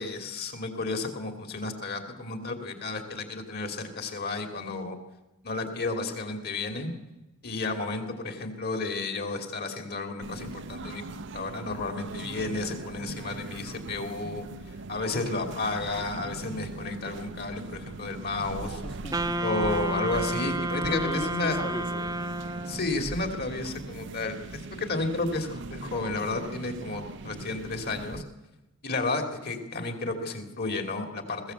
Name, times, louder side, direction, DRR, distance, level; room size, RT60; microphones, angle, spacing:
voice 1, 0.0-5.0 5.4-6.9 7.4-14.4 14.9-18.7 19.4-21.6 22.7-28.2 28.8-31.5, left 3 dB, 50° left, 6 dB, 2.7 m, -32 dB
sound 1, 10.2-28.2, right 3 dB, 55° right, 0.7 m, -40 dB
voice 2, 18.6-19.4 20.8-22.1, left 1 dB, 25° left, 4 dB, 1.2 m, -38 dB
Wind instrument woodwind instrument, 19.1-23.0, right 1 dB, 15° right, 0.8 m, -31 dB
21.0 x 15.5 x 8.1 m, 1.0 s
head